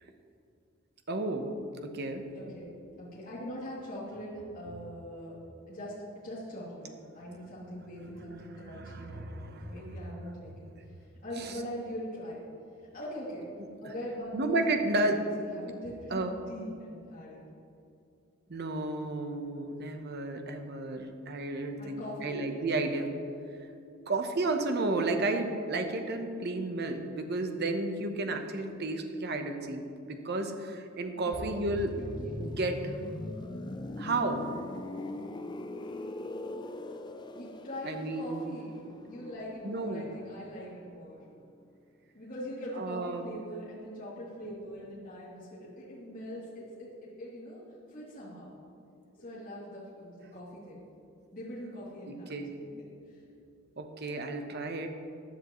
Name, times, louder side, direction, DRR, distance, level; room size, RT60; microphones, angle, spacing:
voice 1, 1.1-1.5 1.8-2.2 8.6-10.0 11.4-11.5 13.8-13.9 14.3-15.2 16.1-16.3 18.5-23.1 24.1-31.9 32.4-32.9 34.0-34.4 37.8-38.6 39.6-40.1 42.8-43.3 52.1-52.5 53.8-54.9, right 2 dB, 50° right, 5 dB, 0.9 m, -32 dB
voice 2, 2.3-5.4 5.7-10.7 11.2-12.4 12.9-13.5 13.8-17.4 21.8-22.4 31.1-31.5 32.0-32.3 37.3-41.2 42.1-47.6 47.9-48.5 49.2-50.8 51.3-52.3 53.1-53.2, equal, 40° left, -8 dB, 2.8 m, -42 dB
sound 1, 31.3-41.0 41.2-41.5, left 2 dB, 20° left, 0.4 m, -41 dB
15.0 x 10.0 x 3.1 m, 2.5 s
head